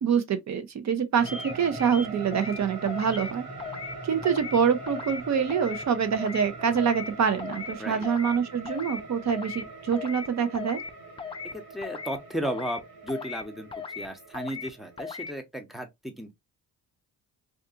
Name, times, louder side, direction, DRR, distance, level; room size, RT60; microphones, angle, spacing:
voice 1, 0.0-3.4 4.0-10.8, right 7 dB, 50° right, 0.7 m, -26 dB
sound 1, 1.2-15.3, right 2 dB, 85° right, 1.2 m, -42 dB
sound 2, 1.3-1.5 1.8-2.6 2.9-3.3 3.6-4.0 4.2-4.6 4.9-5.2 5.5-5.8 6.1-6.5 6.8-7.1 7.4-7.7 8.0-8.4 8.6-9.0 9.3-9.6 9.9-10.3 10.5-10.9 11.2-11.5 11.8-12.2 12.4-12.8 13.1-13.4 13.7-14.1 14.3-14.7 15.0-15.3, left 5 dB, 15° left, 0.3 m, -37 dB
voice 2, 11.5-13.7 14.0-16.3, equal, ahead, 0.8 m, -34 dB
2.6 x 2.4 x 2.5 m
supercardioid pair, 65°, 37 cm